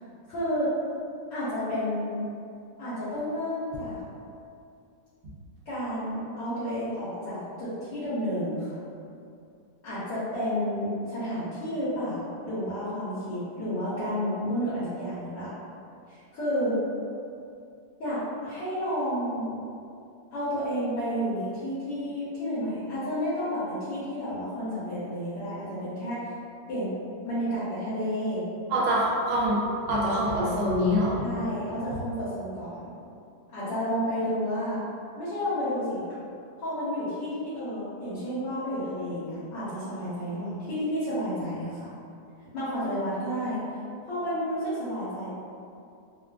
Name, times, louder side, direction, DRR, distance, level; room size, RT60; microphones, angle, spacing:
voice 1, 0.3-0.7 1.3-2.2 2.8-4.0 5.6-8.8 9.8-15.5 16.1-16.7 18.0-19.5 20.3-26.3 26.7-26.9 27.2-28.4 31.2-32.9 33.5-34.8 35.2-36.0 36.6-41.9 42.5-43.6 44.1-45.3, equal, 75° left, -12 dB, 1.6 m, -31 dB
voice 2, 28.7-29.6 29.9-31.2, equal, 85° right, -6 dB, 1.4 m, -24 dB
3.6 x 2.4 x 2.3 m, 2.5 s
omnidirectional pair, 1.9 m